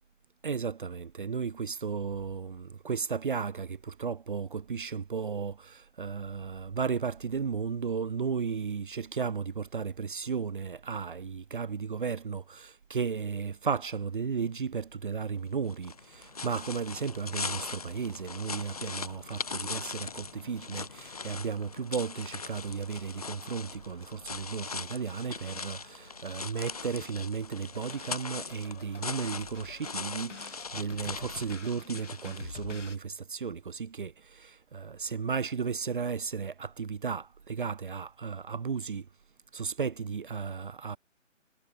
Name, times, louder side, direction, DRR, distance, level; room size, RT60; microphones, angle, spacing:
voice 1, 0.4-39.1 39.5-41.0, right 6 dB, 40° right, 3.1 m, -34 dB
sound 1, 15.7-32.9, left 5 dB, 30° left, 1.1 m, -40 dB
sound 2, 27.7-33.0, left 4 dB, 65° left, 6.1 m, -48 dB
hypercardioid pair, 175°, 39 cm